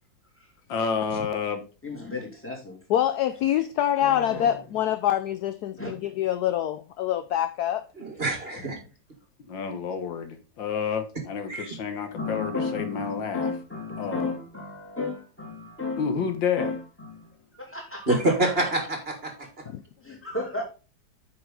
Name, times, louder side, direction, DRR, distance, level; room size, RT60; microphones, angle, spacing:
voice 1, 0.7-1.6 4.0-4.6 9.5-13.5 14.0-14.3 16.0-16.7, left 6 dB, 90° left, 2.0 m, -30 dB
voice 2, 1.8-2.8 4.3-4.5 5.8-6.0 12.2-18.2 20.1-20.6, left 3 dB, 5° left, 2.5 m, -34 dB
voice 3, 2.9-7.8, left 11 dB, 70° left, 1.0 m, -25 dB
voice 4, 8.0-8.8 11.5-11.7 18.1-19.5, right 2 dB, 35° right, 2.0 m, -26 dB
8.9 x 5.9 x 3.8 m
omnidirectional pair, 2.0 m